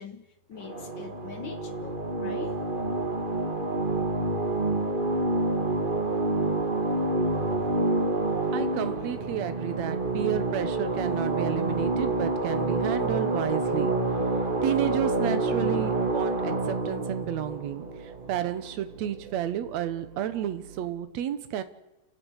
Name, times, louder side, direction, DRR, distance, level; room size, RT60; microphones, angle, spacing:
voice 1, 0.0-2.6, left 6 dB, 65° left, 8 dB, 1.2 m, -43 dB
sound 1, 0.6-18.7, right 2 dB, 25° right, 1.2 m, -28 dB
sound 2, 7.3-20.9, right 8 dB, 80° right, 3.2 m, -47 dB
voice 2, 8.2-14.0 14.6-21.6, right 10 dB, 65° right, 11 dB, 2.2 m, -31 dB
29.5 x 17.0 x 6.6 m, 0.95 s
omnidirectional pair, 3.8 m